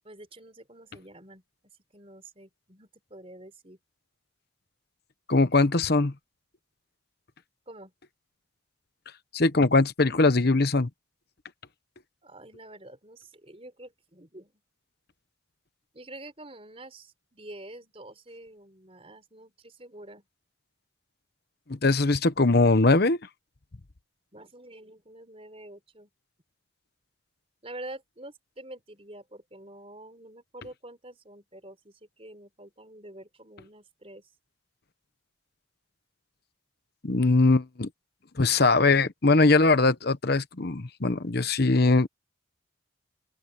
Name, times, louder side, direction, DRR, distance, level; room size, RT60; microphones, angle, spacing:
voice 1, 0.0-1.4 1.9-3.8 7.7-7.9 12.2-14.6 15.9-20.3 24.3-26.1 27.6-34.3, right 1 dB, 30° right, 4.6 m, -47 dB
voice 2, 5.3-6.1 9.3-10.9 21.7-23.2 37.0-37.9 38.4-42.1, left 3 dB, 50° left, 1.0 m, -21 dB
open air
head